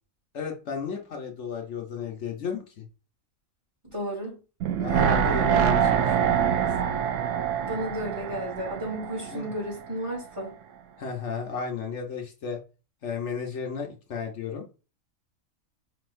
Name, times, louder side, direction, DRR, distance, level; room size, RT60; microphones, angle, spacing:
voice 1, 0.3-2.9 4.8-6.6 9.3-9.5 11.0-12.6 13.0-14.7, left 6 dB, 60° left, 2 dB, 1.1 m, -34 dB
voice 2, 3.9-4.3 7.6-10.5, right 1 dB, 20° right, -3 dB, 2.7 m, -33 dB
sound 1, 4.6-9.7 10.0-10.1, right 8 dB, 70° right, 0.9 m, -25 dB
5.0 x 4.0 x 2.5 m, 0.33 s
omnidirectional pair, 1.4 m